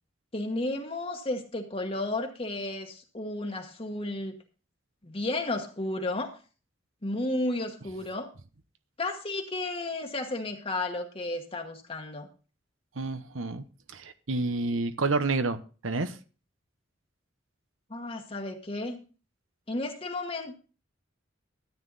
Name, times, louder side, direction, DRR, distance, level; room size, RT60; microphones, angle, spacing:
voice 1, 0.3-4.3 5.0-6.4 7.0-8.3 9.0-12.3 17.9-19.0 19.7-20.5, left 2 dB, 30° left, 1.2 m, -33 dB
voice 2, 13.0-13.6 13.9-16.2, right 3 dB, 90° right, 0.9 m, -29 dB
13.5 x 9.4 x 4.0 m
head